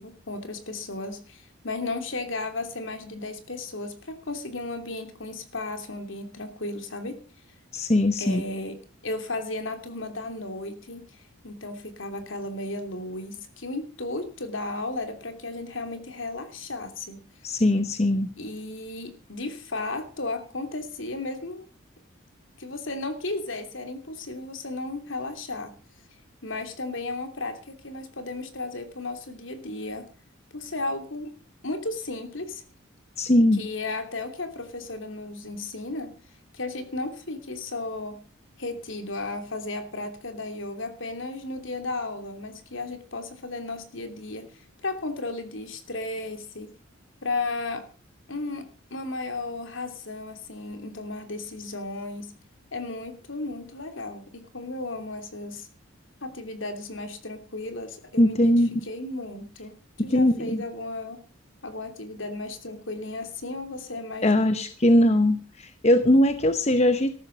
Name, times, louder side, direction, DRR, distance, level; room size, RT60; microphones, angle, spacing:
voice 1, 0.0-7.2 8.2-8.8 9.0-17.2 18.4-21.6 22.6-25.7 26.4-30.1 30.5-31.3 31.6-32.6 33.5-36.1 36.5-38.2 38.6-46.7 47.2-47.9 48.3-48.6 48.9-52.3 52.7-55.7 56.2-59.7 60.0-61.2 61.6-64.6, left 2 dB, 65° left, 7 dB, 3.0 m, -34 dB
voice 2, 7.7-8.4 17.4-18.3 33.2-33.6 58.2-58.7 60.0-60.6 64.2-67.1, left 1 dB, 30° left, 10 dB, 0.9 m, -20 dB
14.0 x 13.0 x 5.2 m, 0.36 s
head